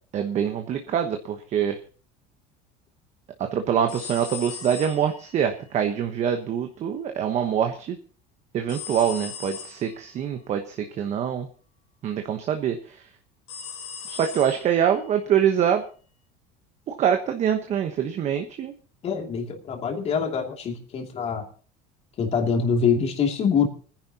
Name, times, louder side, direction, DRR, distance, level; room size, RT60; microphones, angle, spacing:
voice 1, 0.1-1.8 3.4-8.0 8.5-11.5 12.0-13.1 14.1-15.8 16.9-18.7, right 8 dB, 40° right, 6 dB, 1.2 m, -25 dB
sound 1, 3.9-5.5 8.7-9.9 13.5-14.8, left 7 dB, 75° left, 4.0 m, -38 dB
voice 2, 19.0-21.4 22.2-23.7, left 6 dB, 35° left, 2 dB, 2.7 m, -24 dB
29.5 x 10.5 x 2.9 m, 0.41 s
cardioid pair, 140°, 18 cm